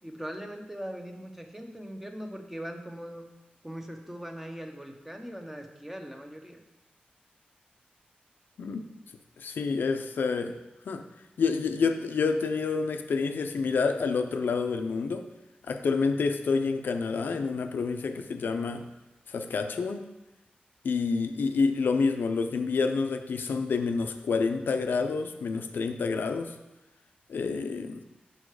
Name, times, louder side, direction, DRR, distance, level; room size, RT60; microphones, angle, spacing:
voice 1, 0.0-3.3 3.6-6.6, equal, 10° right, 4 dB, 0.9 m, -40 dB
voice 2, 9.4-10.6 10.9-11.0 11.4-15.3 15.7-18.8 19.3-20.1 20.8-26.5 27.3-28.0, left 4 dB, 85° left, 8 dB, 0.5 m, -28 dB
6.2 x 5.6 x 4.7 m, 1.0 s
wide cardioid pair, 80°, 3 cm